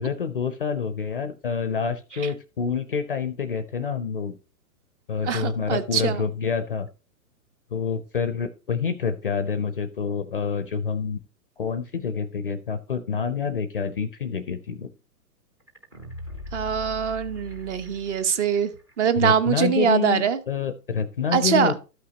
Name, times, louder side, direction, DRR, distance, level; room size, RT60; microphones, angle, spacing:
voice 1, 0.0-4.3 5.1-6.9 7.7-11.2 11.6-14.9 19.2-21.7, left 6 dB, 35° left, 11 dB, 0.4 m, -27 dB
voice 2, 5.2-6.3 16.5-18.7 19.0-20.4 21.3-21.8, right 7 dB, 45° right, 13 dB, 0.9 m, -23 dB
sound 1, 15.7-18.6 18.9-19.0, left 1 dB, 20° right, 0.5 m, -39 dB
13.0 x 5.8 x 2.8 m, 0.32 s
hypercardioid pair, 150°, 50 cm